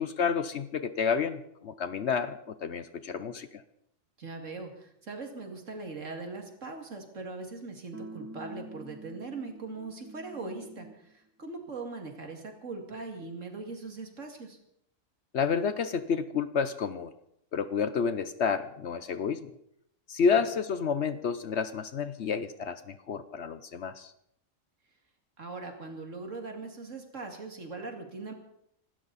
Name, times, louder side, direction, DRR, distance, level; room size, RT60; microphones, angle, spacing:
voice 1, 0.0-3.6 15.3-17.1 17.5-19.5 20.1-24.1, left 6 dB, 60° left, 13 dB, 1.0 m, -30 dB
voice 2, 4.2-14.6 20.3-20.4 25.4-28.3, right 3 dB, 60° right, 4 dB, 2.7 m, -40 dB
sound 1, 7.9-11.1, right 2 dB, 20° right, 0.4 m, -46 dB
25.5 x 12.5 x 4.1 m, 0.74 s
omnidirectional pair, 1.4 m